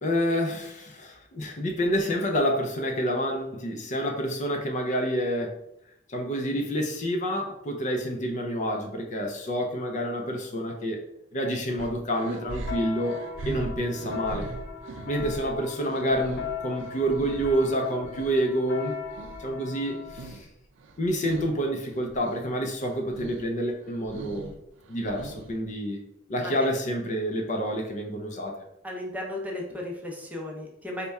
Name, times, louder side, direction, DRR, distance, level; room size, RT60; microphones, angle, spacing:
voice 1, 0.0-5.6 6.1-11.0 11.3-13.2 13.5-14.5 15.1-18.9 19.4-20.5 21.0-24.5 24.9-26.0 26.3-28.6, equal, 40° left, 2 dB, 0.5 m, -28 dB
sound 1, 11.8-18.4 18.7-20.5 20.8-21.5 21.9-22.5 22.8-23.5 23.8-25.7, right 2 dB, 75° right, 0.4 m, -40 dB
sound 2, 12.3-20.3, left 6 dB, 65° left, 0.7 m, -39 dB
voice 2, 26.4-26.7 28.8-31.1, left 1 dB, 10° right, -1 dB, 0.6 m, -35 dB
4.1 x 2.2 x 3.4 m, 0.82 s
head